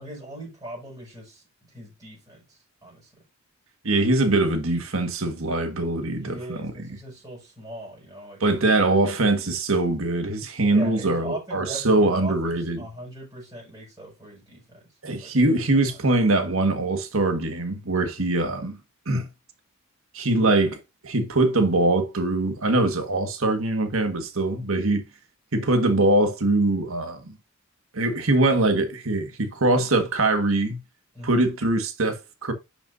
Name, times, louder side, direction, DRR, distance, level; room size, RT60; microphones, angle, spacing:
voice 1, 0.0-1.4 1.7-3.1 6.2-8.6 10.7-14.8 15.2-15.3 15.9-16.0 31.1-31.5, right 1 dB, 15° right, 6.2 m, -40 dB
voice 2, 3.8-6.6 8.4-12.9 15.0-18.8 19.0-19.3 20.1-25.0 25.5-27.3 27.9-30.8 31.2-32.5, right 2 dB, 75° right, 1.6 m, -22 dB
11.0 x 6.9 x 2.6 m
head